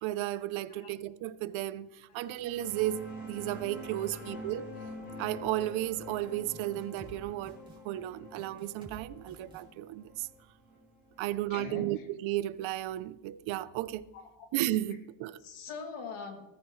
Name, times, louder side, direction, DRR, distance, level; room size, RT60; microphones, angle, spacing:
voice 1, 0.0-4.7 5.2-7.6 7.8-10.3 11.2-14.1 14.5-15.4, right 14 dB, 70° right, 0.8 m, -34 dB
sound 1, 2.2-11.5, equal, 20° left, 4.4 m, -46 dB
sound 2, 6.5-7.2 7.4-7.8 8.3-9.0 9.3-9.6, right 3 dB, 10° right, 3.3 m, -51 dB
voice 2, 11.3-12.1 14.1-14.5 15.4-16.4, left 5 dB, 90° left, 3.0 m, -43 dB
18.0 x 14.0 x 3.2 m
cardioid pair, 150°, 48 cm